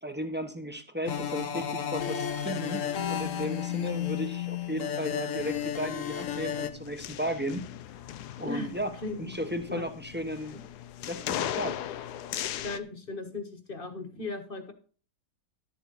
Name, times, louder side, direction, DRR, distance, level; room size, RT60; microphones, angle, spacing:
voice 1, 0.0-7.6 8.4-8.9 9.2-10.6 11.1-11.8, equal, 10° right, 7 dB, 0.9 m, -35 dB
sound 1, 1.0-6.7, left 9 dB, 60° left, 1.1 m, -32 dB
sound 2, 5.4-12.8, left 11 dB, 80° left, 1.2 m, -38 dB
voice 2, 9.0-9.3 9.7-9.9 10.5-10.6 12.6-14.7, left 2 dB, 35° left, 8 dB, 1.6 m, -37 dB
12.0 x 7.9 x 4.1 m, 0.38 s
omnidirectional pair, 1.7 m